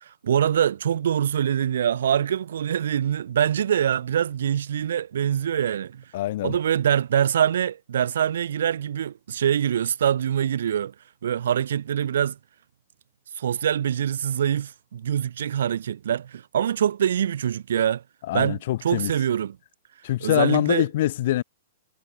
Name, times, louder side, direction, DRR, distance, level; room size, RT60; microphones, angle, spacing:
voice 1, 0.0-6.0 6.4-10.9 11.2-12.4 13.4-18.0 18.3-19.6 20.2-20.9, right 9 dB, 75° right, 2.3 m, -24 dB
voice 2, 6.1-6.6 18.3-19.1 20.0-21.4, left 14 dB, 50° left, 1.6 m, -24 dB
hypercardioid pair, 160°, 0 cm